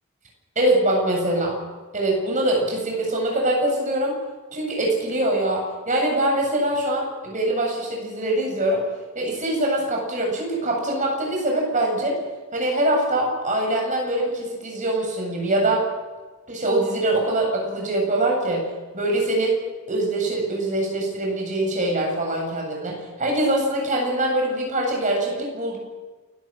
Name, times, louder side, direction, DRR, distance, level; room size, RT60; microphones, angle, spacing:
voice 1, 0.6-1.6 1.9-4.2 4.5-8.8 9.1-12.2 12.5-15.9 16.5-18.7 18.9-19.6 19.9-25.8, right 1 dB, 35° right, 0 dB, 7.8 m, -23 dB
29.0 x 13.0 x 7.7 m, 1.3 s
head